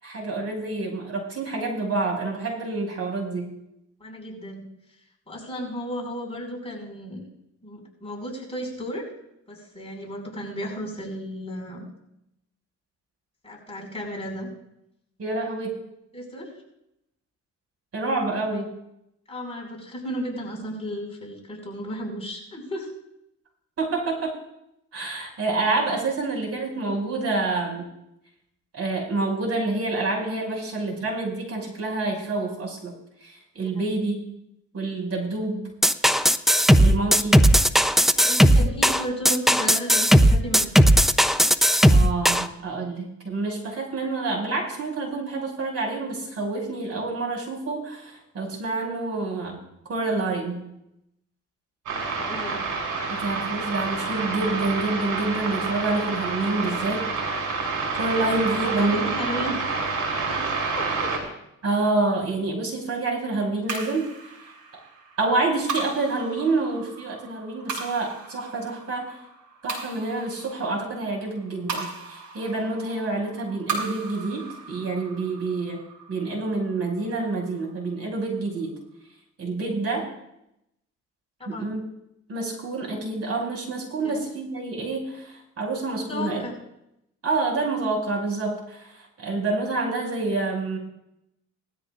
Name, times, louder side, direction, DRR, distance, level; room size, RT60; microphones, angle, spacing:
voice 1, 0.0-3.5 15.2-15.7 17.9-18.7 23.8-24.3 24.9-27.9 28.7-32.9 33.2-34.2 34.7-35.7 36.8-37.5 41.9-49.6 49.9-50.7 53.1-57.0 57.9-59.0 61.6-64.1 65.2-69.2 69.6-75.8 76.1-78.8 79.4-80.1 81.5-81.8 82.3-86.4 87.2-90.8, right 3 dB, 55° right, -1 dB, 6.0 m, -27 dB
voice 2, 4.0-4.7 5.3-7.3 7.6-9.1 9.5-11.8 13.4-14.5 16.1-16.5 19.3-22.9 33.8-34.0 38.1-40.7 51.9-52.6 58.6-59.6 60.2-61.1 79.7-79.8 81.4-81.8 84.0-84.2 86.0-86.6, equal, 20° left, -3 dB, 5.6 m, -34 dB
sound 1, 35.8-42.5, equal, ahead, 0.6 m, -17 dB
sound 2, 51.9-61.2, right 4 dB, 90° right, 4.4 m, -28 dB
sound 3, 63.7-78.2, right 5 dB, 70° right, 5.0 m, -38 dB
20.0 x 13.5 x 2.5 m, 0.81 s
cardioid pair, 90°, 30 cm